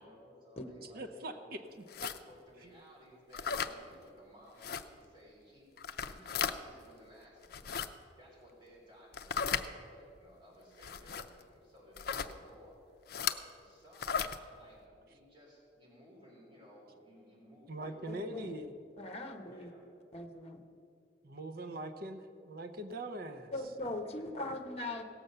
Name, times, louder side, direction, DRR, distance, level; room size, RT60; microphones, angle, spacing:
voice 1, 0.0-1.7 2.3-5.7 6.0-7.7 8.2-18.5 19.4-19.9 24.0-24.3, equal, 25° right, -5 dB, 3.9 m, -58 dB
voice 2, 0.8-2.1 17.7-18.7 21.2-23.5, right 1 dB, 55° right, 7 dB, 0.8 m, -42 dB
sound 1, 1.9-2.2 3.3-3.7 4.6-4.8 5.8-6.6 7.4-7.9 9.1-9.7 10.8-11.3 12.0-12.3 13.1-13.4 14.0-14.4, left 7 dB, 55° left, 0.5 m, -35 dB
voice 3, 18.1-18.5 19.0-19.7 20.1-20.6 23.5-25.0, left 2 dB, 35° left, 5 dB, 1.0 m, -40 dB
17.0 x 7.0 x 6.7 m, 2.5 s
head